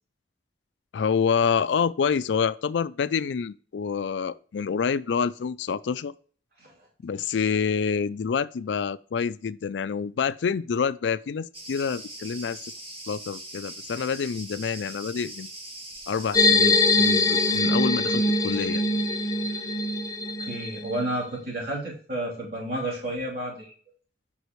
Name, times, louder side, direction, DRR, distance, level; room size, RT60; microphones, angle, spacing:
voice 1, 0.9-6.1 7.0-12.6 13.1-15.5 16.1-18.8, left 6 dB, 85° left, 0.4 m, -27 dB
Cricket, 11.5-17.6, right 1 dB, 30° right, 1.6 m, -41 dB
sound 1, 16.3-21.1, left 2 dB, 20° left, 0.5 m, -23 dB
voice 2, 20.4-23.7, right 1 dB, 55° right, 3.2 m, -31 dB
8.1 x 5.4 x 3.1 m
head